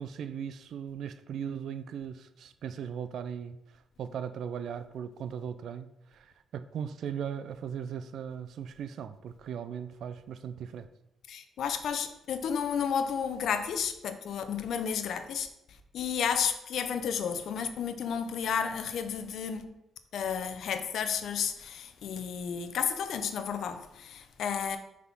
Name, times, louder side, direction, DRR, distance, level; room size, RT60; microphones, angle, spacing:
voice 1, 0.0-3.6 4.0-5.9 6.1-10.9, right 8 dB, 70° right, 0.4 m, -38 dB
voice 2, 11.3-15.5 15.9-19.6 20.1-24.8, left 7 dB, 70° left, 0.7 m, -32 dB
6.0 x 3.6 x 5.8 m
cardioid pair, 70°, 0 cm